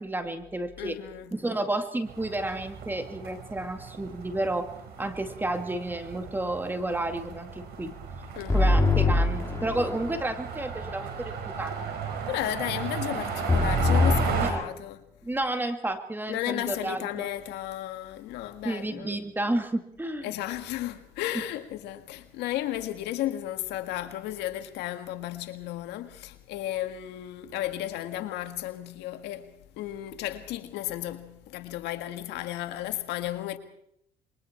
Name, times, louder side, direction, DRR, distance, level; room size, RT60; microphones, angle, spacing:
voice 1, 0.0-1.0 1.3-4.7 5.0-7.9 8.5-11.9 14.4-14.6 15.2-17.3 18.6-20.3, right 1 dB, 10° right, 2.2 m, -31 dB
voice 2, 0.8-1.3 8.4-8.9 12.3-15.0 16.3-19.2 20.2-33.6, left 13 dB, 85° left, 1.9 m, -34 dB
sound 1, 2.1-14.5, right 6 dB, 75° right, 5.1 m, -35 dB
sound 2, 8.5-10.2 13.5-14.4, left 2 dB, 15° left, 3.2 m, -23 dB
27.5 x 22.5 x 4.5 m
cardioid pair, 110°, 17 cm